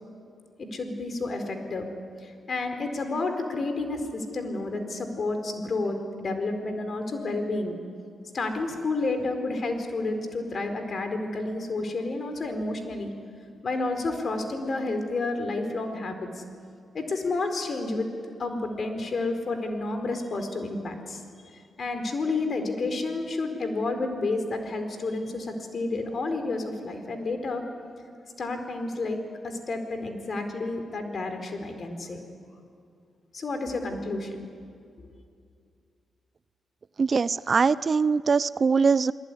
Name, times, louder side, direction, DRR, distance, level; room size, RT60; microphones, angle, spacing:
voice 1, 0.6-1.9 2.2-7.8 8.3-13.1 13.6-16.4 16.9-18.1 18.4-21.2 21.5-27.6 28.4-32.2 33.3-34.4, left 2 dB, 55° left, 6 dB, 4.4 m, -30 dB
voice 2, 37.0-39.1, right 5 dB, 50° right, 18 dB, 0.6 m, -22 dB
28.5 x 19.5 x 9.9 m, 2.3 s
supercardioid pair, 55°, 0 cm